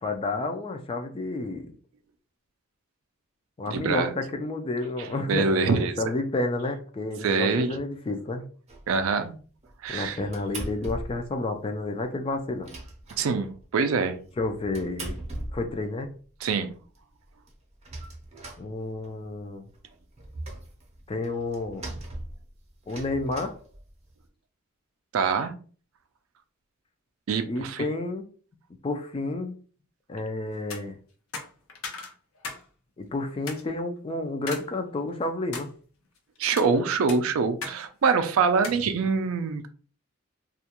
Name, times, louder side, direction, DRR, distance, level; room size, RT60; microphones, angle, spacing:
voice 1, 0.0-1.7 3.6-8.4 9.9-12.7 14.4-15.2 15.5-16.1 18.6-19.6 21.1-21.9 22.9-23.5 27.5-28.3 28.8-29.6 30.1-31.0 33.0-35.7, left 2 dB, 25° left, 5 dB, 0.3 m, -30 dB
voice 2, 3.7-4.1 5.3-5.9 7.2-7.8 8.9-9.3 9.8-10.2 13.2-14.2 16.4-16.7 25.1-25.5 27.3-27.9 36.4-39.7, right 5 dB, 75° right, 9 dB, 0.4 m, -24 dB
sound 1, 8.7-9.1 9.6-11.4 11.6-11.7 12.0-12.1 12.4-13.7 14.2-16.1 16.6-16.7 16.9-17.0 17.2-19.3 19.7-24.2, right 1 dB, 30° right, 0.6 m, -40 dB
sound 2, 30.6-30.8 31.3-32.7 33.0-33.1 33.5-33.6 34.5-34.7 35.1-35.7 36.4-36.7 37.1-37.8 38.0-38.2 38.6-38.8, left 4 dB, 75° left, 0.6 m, -37 dB
2.4 x 2.2 x 2.8 m, 0.41 s
head